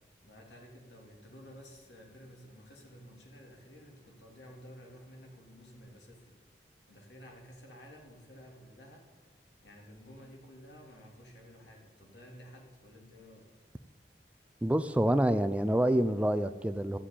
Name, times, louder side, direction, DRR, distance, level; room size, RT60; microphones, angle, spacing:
voice 1, 0.2-6.3 6.9-9.0 9.6-13.5, equal, 85° left, 0 dB, 3.0 m, -53 dB
voice 2, 14.6-17.0, right 1 dB, 10° right, 11 dB, 0.3 m, -27 dB
12.5 x 7.5 x 8.5 m, 1.4 s
head